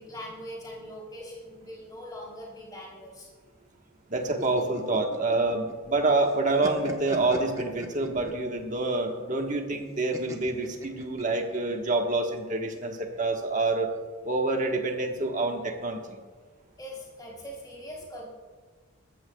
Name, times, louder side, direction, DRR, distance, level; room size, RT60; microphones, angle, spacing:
voice 1, 0.0-3.3 16.8-18.3, equal, 20° left, -4 dB, 3.6 m, -41 dB
voice 2, 4.1-13.9 14.2-16.2, right 2 dB, 35° right, 3 dB, 1.3 m, -27 dB
sound 1, 4.2-6.0 6.3-8.5 10.1-11.6, right 1 dB, 15° right, 1.0 m, -39 dB
21.0 x 14.0 x 2.3 m, 1.5 s
head